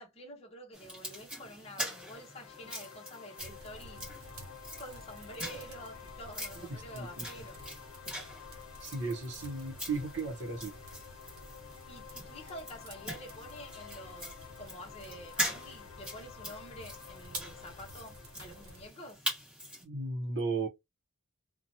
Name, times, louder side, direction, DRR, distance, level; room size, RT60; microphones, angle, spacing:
voice 1, 0.0-4.0 4.8-7.6 11.9-19.2, equal, 30° left, 0.8 m, -48 dB
sound 1, 0.7-19.8, equal, 5° right, 1.1 m, -43 dB
sound 2, 1.9-18.9, left 9 dB, 90° left, 0.6 m, -52 dB
sound 3, 3.4-18.9, right 1 dB, 85° right, 0.8 m, -52 dB
voice 2, 6.7-7.3 8.8-10.7 19.8-20.7, right 3 dB, 55° right, 0.8 m, -35 dB
2.8 x 2.2 x 2.7 m
head